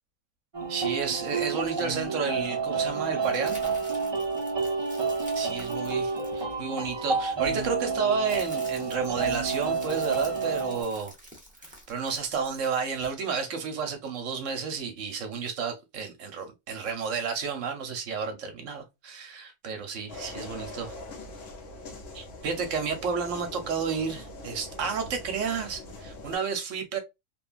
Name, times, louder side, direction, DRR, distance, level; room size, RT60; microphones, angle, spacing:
sound 1, 0.5-10.8, right 4 dB, 40° right, 0.4 m, -29 dB
voice 1, 0.7-3.6 5.4-11.1 11.9-21.0 22.1-27.0, right 5 dB, 65° right, 0.9 m, -31 dB
sound 2, 3.2-7.0 7.8-13.1, equal, 10° right, 0.6 m, -49 dB
sound 3, 20.1-26.4, left 2 dB, 65° left, 1.0 m, -42 dB
3.0 x 2.2 x 2.3 m
omnidirectional pair, 1.5 m